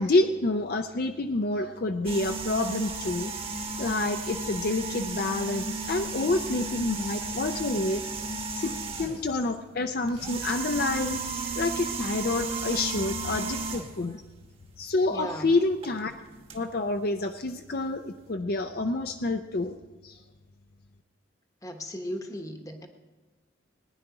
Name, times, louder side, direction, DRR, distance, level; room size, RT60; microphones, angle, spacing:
voice 1, 0.0-3.3 3.8-11.2 11.6-14.2 14.8-16.1 16.5-19.8 20.0-20.2, left 2 dB, 50° left, 6 dB, 0.5 m, -28 dB
sound 1, 2.0-9.4 10.1-14.0 15.8-16.0 16.5-16.6, right 3 dB, 30° right, 1.1 m, -34 dB
voice 2, 12.7-13.1 14.0-14.2 15.1-15.5 21.6-22.9, left 1 dB, 15° left, 5 dB, 1.0 m, -38 dB
19.5 x 10.0 x 4.8 m, 1.3 s
head